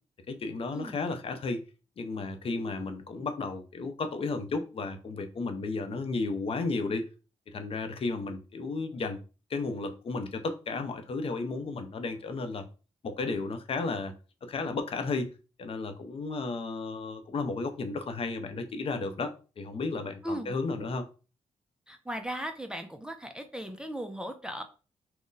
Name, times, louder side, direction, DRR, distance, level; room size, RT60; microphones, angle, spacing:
voice 1, 0.3-1.6 2.0-7.0 7.5-9.2 9.5-12.6 13.0-14.1 14.4-15.3 15.6-21.1, left 3 dB, 50° left, 0.6 m, -33 dB
voice 2, 20.2-20.5 21.9-24.6, equal, 5° right, 0.4 m, -37 dB
2.5 x 2.1 x 3.8 m
cardioid pair, 75°, 13 cm